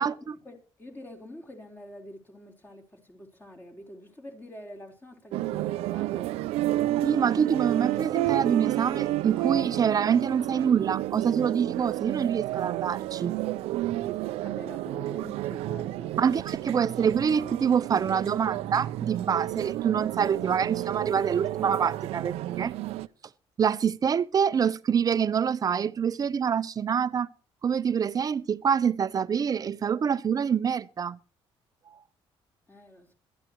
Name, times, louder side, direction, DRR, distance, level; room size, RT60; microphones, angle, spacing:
voice 1, 0.0-6.3 14.4-16.4 25.9-26.0 32.7-33.1, left 1 dB, 20° left, 4.0 m, -46 dB
sound 1, 5.3-23.1, right 15 dB, 90° right, 0.6 m, -31 dB
voice 2, 7.0-13.4 16.2-22.7 23.6-27.3 27.6-31.2, right 7 dB, 40° right, 0.7 m, -26 dB
21.5 x 13.0 x 3.0 m
cardioid pair, 105°, 10 cm